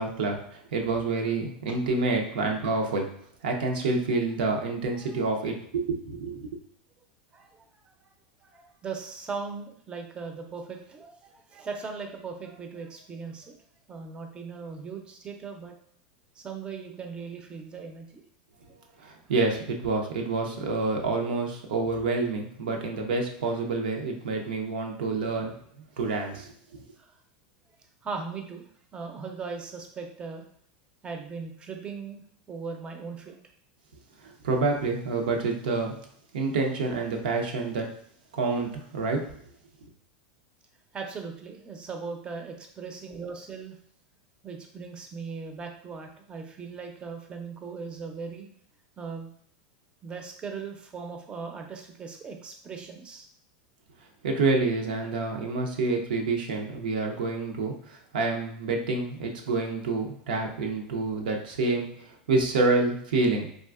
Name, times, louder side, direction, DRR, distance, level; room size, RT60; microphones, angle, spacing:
voice 1, 0.0-3.1 3.4-6.5 19.0-25.5 26.0-26.5 34.2-36.0 36.3-37.9 38.3-39.3 54.2-63.5, right 3 dB, 85° right, 2 dB, 0.7 m, -28 dB
voice 2, 7.3-8.1 8.4-13.5 13.9-15.7 16.4-18.2 27.0-27.2 28.0-28.6 28.9-30.5 31.0-32.2 32.5-33.4 40.9-43.8 44.4-48.5 49.0-49.3 50.0-53.3, right 5 dB, 20° right, 4 dB, 0.5 m, -39 dB
3.6 x 2.5 x 2.4 m, 0.65 s
supercardioid pair, 130°, 5 cm